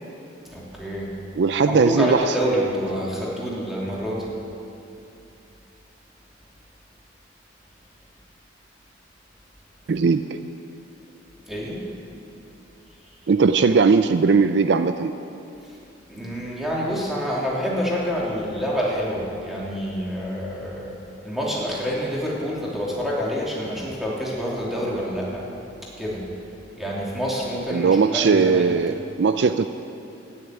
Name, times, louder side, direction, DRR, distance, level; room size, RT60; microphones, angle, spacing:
voice 1, 0.4-1.1 1.6-4.3 11.4-11.8 16.1-25.5 26.0-26.2 26.7-28.6, equal, ahead, -6 dB, 2.8 m, -27 dB
voice 2, 1.4-2.4 9.9-10.2 13.3-15.1 27.7-29.7, right 5 dB, 60° right, 10 dB, 0.4 m, -19 dB
12.5 x 10.0 x 9.1 m, 2.7 s
head